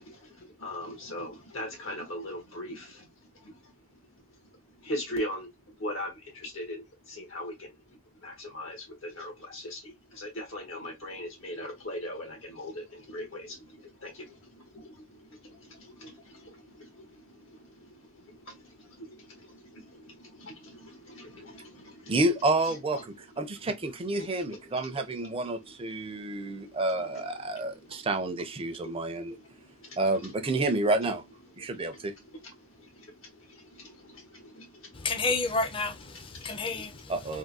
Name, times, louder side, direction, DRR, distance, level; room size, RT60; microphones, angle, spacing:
voice 1, 0.0-22.2 22.6-28.1 28.6-30.5 31.6-35.1 36.3-37.4, left 1 dB, 85° left, 1.5 m, -42 dB
voice 2, 22.1-23.0 23.4-29.4 30.0-31.2 31.6-32.1 37.1-37.4, right 2 dB, 30° right, 0.5 m, -29 dB
voice 3, 34.9-37.4, left 3 dB, 25° left, 0.4 m, -31 dB
3.5 x 2.2 x 2.7 m
head